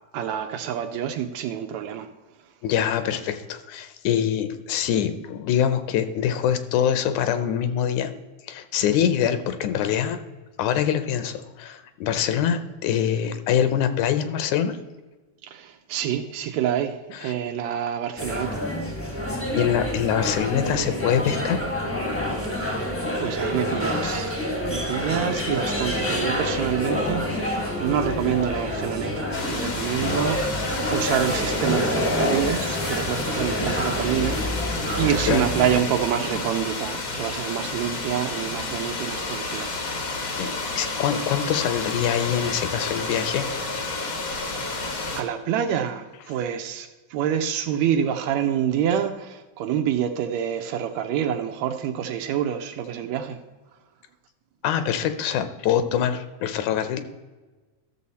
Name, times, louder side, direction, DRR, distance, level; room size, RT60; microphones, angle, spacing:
voice 1, 0.1-2.1 15.4-18.6 22.5-22.9 23.2-24.4 24.7-39.7 44.5-53.4, right 9 dB, 75° right, 6 dB, 1.8 m, -27 dB
voice 2, 2.6-8.1 8.5-10.2 10.6-14.8 17.1-17.3 19.5-21.6 24.6-24.9 35.3-35.4 40.4-40.5 40.8-43.5 43.8-44.0 44.8-45.0 54.6-57.0, left 9 dB, 80° left, 10 dB, 2.0 m, -24 dB
sound 1, 18.2-35.8, left 1 dB, 10° left, 0.7 m, -27 dB
sound 2, 29.3-45.2, left 3 dB, 60° left, 0.9 m, -31 dB
13.5 x 6.9 x 4.2 m, 1.2 s
omnidirectional pair, 3.5 m